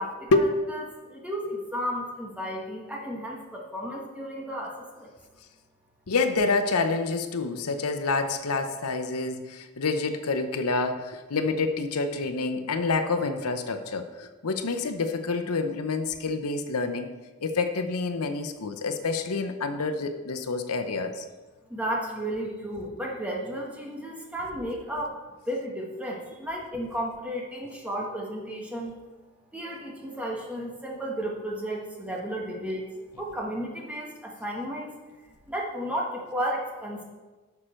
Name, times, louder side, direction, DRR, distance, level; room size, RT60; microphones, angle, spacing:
voice 1, 0.0-5.1 21.7-25.2 25.5-28.9 29.5-35.0 35.2-37.0, equal, 5° right, -2 dB, 1.5 m, -33 dB
voice 2, 6.1-17.1 17.4-21.2, left 3 dB, 85° left, 8 dB, 0.8 m, -27 dB
11.0 x 6.5 x 4.4 m, 1.2 s
head